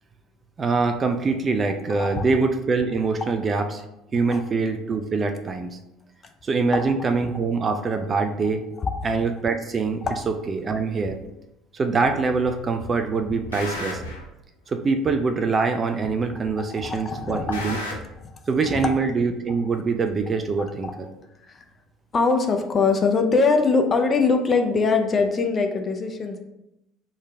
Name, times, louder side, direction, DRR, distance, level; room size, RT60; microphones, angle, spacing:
voice 1, 0.6-3.8 4.1-5.8 6.4-8.6 9.0-10.0 10.5-11.2 11.7-14.0 14.7-17.8 18.5-21.1, right 4 dB, 30° right, 7 dB, 0.3 m, -24 dB
voice 2, 1.9-2.2 4.3-4.4 8.8-8.9 10.0-10.1 16.6-17.7 18.2-18.4 18.6-18.8 19.5-19.6 20.8-20.9 21.5-21.6 22.1-26.4, left 4 dB, 35° left, 4 dB, 0.4 m, -22 dB
sound 1, 10.0-10.2 11.0-11.1 12.0-12.5 12.8-14.3 15.0-15.1 16.0-16.5 16.8-18.0, left 2 dB, 85° left, 0.5 m, -35 dB
3.2 x 2.1 x 3.5 m, 0.88 s
figure-of-eight pair, 60°, 0 cm